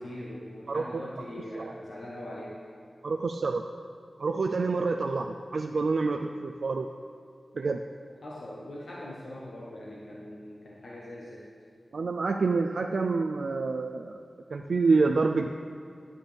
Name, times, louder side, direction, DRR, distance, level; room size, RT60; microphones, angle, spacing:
voice 1, 0.0-2.6 8.2-11.5, left 1 dB, 85° left, -5 dB, 1.2 m, -41 dB
voice 2, 3.0-3.6 4.2-6.9 7.6-7.8 11.9-14.2 14.5-15.5, right 4 dB, 80° right, 3 dB, 0.4 m, -27 dB
10.0 x 9.9 x 3.5 m, 2.4 s
cardioid pair, 45°, 0 cm